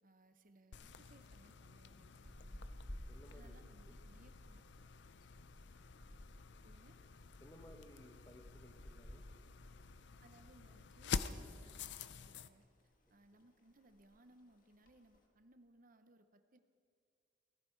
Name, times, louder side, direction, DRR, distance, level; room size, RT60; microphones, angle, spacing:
voice 1, 0.0-2.8 3.3-4.7 6.6-7.0 10.2-12.7 13.1-16.6, right 1 dB, 45° right, 9 dB, 0.9 m, -65 dB
sound 1, 0.7-12.5, left 5 dB, 60° left, 0.5 m, -48 dB
sound 2, 2.2-10.8 11.0-11.2 11.6-12.5 12.8-13.2 13.4-13.5 13.7-14.2 14.7-15.2, equal, 45° left, 1.7 m, -55 dB
voice 2, 3.1-3.6 3.9-4.0 7.4-9.2, left 1 dB, 20° left, 5 dB, 1.2 m, -59 dB
18.5 x 16.0 x 4.7 m, 2.2 s
head